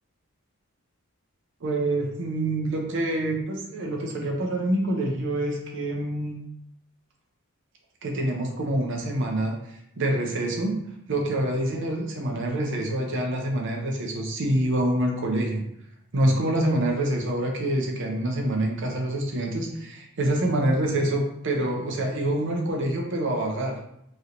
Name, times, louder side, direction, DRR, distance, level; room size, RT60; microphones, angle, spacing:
voice 1, 1.6-6.4 8.0-10.8 11.1-15.6 16.1-23.8, right 1 dB, 55° right, 1 dB, 0.6 m, -26 dB
3.0 x 2.8 x 2.5 m, 0.78 s
head